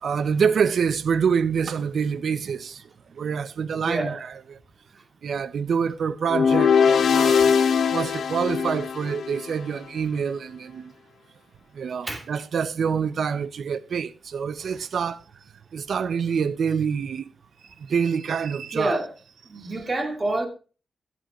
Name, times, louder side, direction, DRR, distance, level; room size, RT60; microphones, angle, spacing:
voice 1, 0.0-2.8 3.1-4.2 5.2-7.5 7.9-10.9 11.7-15.2 15.7-17.3 17.8-19.0, right 6 dB, 70° right, 0.7 m, -26 dB
voice 2, 3.8-4.2 12.0-12.3 18.7-19.1 19.4-20.5, right 2 dB, 30° right, 2.4 m, -27 dB
sound 1, 6.3-9.5, left 6 dB, 75° left, 0.8 m, -21 dB
15.0 x 9.2 x 3.0 m
cardioid pair, 85°, 0 cm